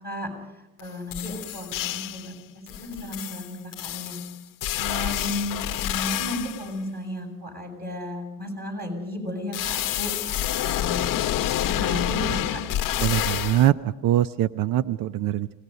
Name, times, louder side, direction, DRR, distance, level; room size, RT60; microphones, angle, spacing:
voice 1, 0.0-2.3 2.8-4.2 4.7-10.1 10.6-11.1 11.6-12.6, left 1 dB, 30° right, 2 dB, 7.4 m, -34 dB
sound 1, 0.8-0.9 1.1-2.3 2.7-6.7 9.5-13.7, left 13 dB, 80° left, 0.8 m, -28 dB
voice 2, 13.0-15.5, right 13 dB, 85° right, 15 dB, 0.6 m, -23 dB
24.5 x 19.0 x 5.5 m, 1.0 s
cardioid pair, 110°, 32 cm